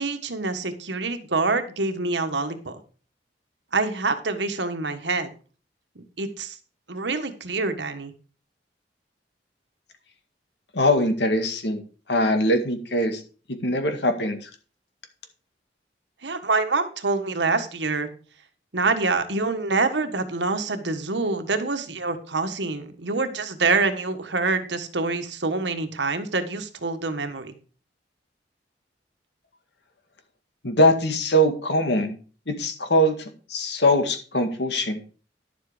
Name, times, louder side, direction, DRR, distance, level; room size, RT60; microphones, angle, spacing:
voice 1, 0.0-2.8 3.7-5.3 5.9-6.6 6.9-8.1 16.2-18.1 18.7-27.5, right 3 dB, 90° right, 8 dB, 1.5 m, -26 dB
voice 2, 10.7-11.8 12.1-13.2 13.6-14.4 30.6-32.2 32.5-33.2 33.5-35.0, equal, 70° left, 6 dB, 2.0 m, -22 dB
11.5 x 7.5 x 5.0 m, 0.38 s
head